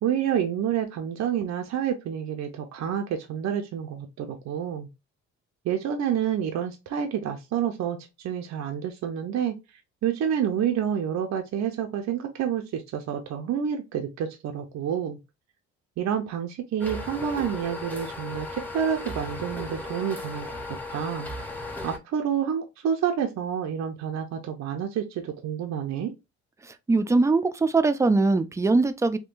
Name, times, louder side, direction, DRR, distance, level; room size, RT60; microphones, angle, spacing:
voice 1, 0.0-4.9 5.6-8.0 8.2-9.6 10.0-15.2 16.0-20.5 20.9-21.3 21.8-26.1, right 8 dB, 65° right, 0.6 m, -28 dB
sound 1, 16.8-22.0, left 2 dB, 5° left, 0.7 m, -36 dB
voice 2, 26.9-29.2, right 3 dB, 10° right, 0.3 m, -21 dB
3.6 x 2.2 x 2.5 m
cardioid pair, 90°, 30 cm